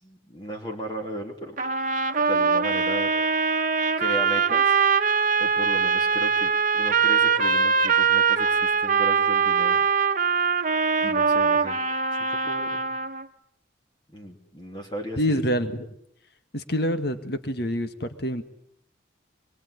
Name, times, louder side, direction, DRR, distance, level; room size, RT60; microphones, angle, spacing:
voice 1, 0.0-1.6 2.2-3.1 4.0-4.8 5.4-9.8 11.0-11.8 12.3-12.9 14.1-15.4, right 1 dB, 20° left, 1 dB, 3.1 m, -36 dB
sound 1, 1.6-13.3, right 5 dB, 40° right, 1.3 m, -22 dB
voice 2, 15.2-15.9 16.5-18.4, equal, 55° left, 10 dB, 2.0 m, -26 dB
24.5 x 23.0 x 9.9 m, 0.74 s
head